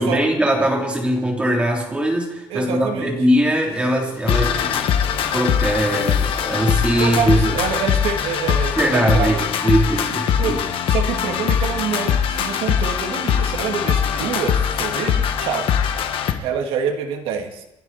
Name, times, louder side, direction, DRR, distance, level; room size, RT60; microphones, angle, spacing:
voice 1, 0.0-7.6 8.8-10.6, right 1 dB, 10° right, 0 dB, 3.3 m, -21 dB
voice 2, 2.5-3.2 7.0-9.7 10.4-15.7 16.4-17.6, right 7 dB, 90° right, 4 dB, 2.0 m, -26 dB
sound 1, 3.7-8.0, left 6 dB, 85° left, 3.9 m, -37 dB
sound 2, 4.3-16.3, left 8 dB, 70° left, 1.6 m, -21 dB
28.0 x 11.0 x 4.2 m, 0.89 s
cardioid pair, 140°, 9 cm